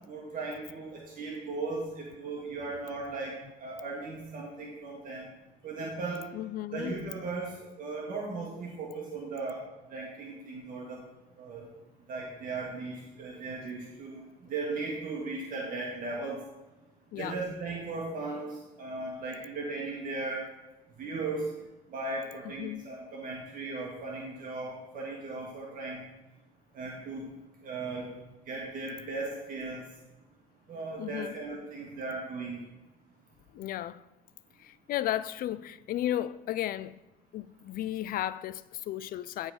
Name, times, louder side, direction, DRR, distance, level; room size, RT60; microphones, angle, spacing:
voice 1, 0.1-3.3 3.6-5.3 5.6-6.3 6.7-9.6 9.9-11.0 11.4-11.6 12.1-14.2 14.5-16.4 17.2-20.4 21.0-21.5 21.9-26.1 26.7-27.3 27.6-28.1 28.5-29.9 30.7-32.6, right 3 dB, 55° right, 1.8 m, -37 dB
voice 2, 6.3-7.0 17.1-17.4 22.6-22.8 31.0-31.3 33.5-34.0 34.6-37.0 37.3-39.5, left 12 dB, 60° left, 0.4 m, -34 dB
12.0 x 4.1 x 5.0 m
cardioid pair, 110°, 17 cm